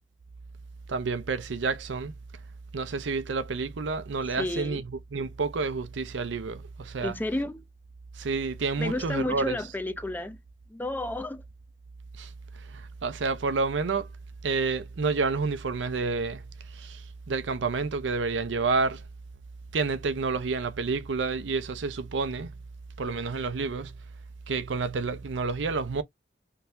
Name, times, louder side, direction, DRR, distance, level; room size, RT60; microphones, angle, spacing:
voice 1, 0.9-2.1 2.7-4.8 5.1-7.1 8.2-9.6 12.2-12.3 12.6-14.1 14.4-16.4 16.7-19.0 19.7-22.5 23.0-23.9 24.5-26.0, right 4 dB, 85° right, 0.6 m, -29 dB
voice 2, 4.4-4.8 7.0-7.6 8.8-10.4 10.7-11.4, left 1 dB, 10° left, 0.4 m, -31 dB
3.8 x 2.7 x 2.5 m
head